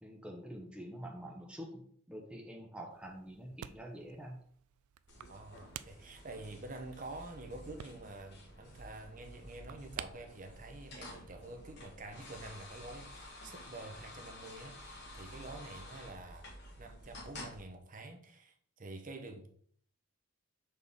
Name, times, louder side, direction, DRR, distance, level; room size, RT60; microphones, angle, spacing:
voice 1, 0.0-4.5, equal, 5° right, 0.7 m, -47 dB
sound 1, 2.9-11.6, right 11 dB, 85° right, 0.3 m, -53 dB
sound 2, 5.1-17.6, left 1 dB, 50° left, 1.4 m, -51 dB
voice 2, 5.3-16.5 16.8-19.5, right 2 dB, 35° right, 0.8 m, -48 dB
6.3 x 4.2 x 3.6 m
head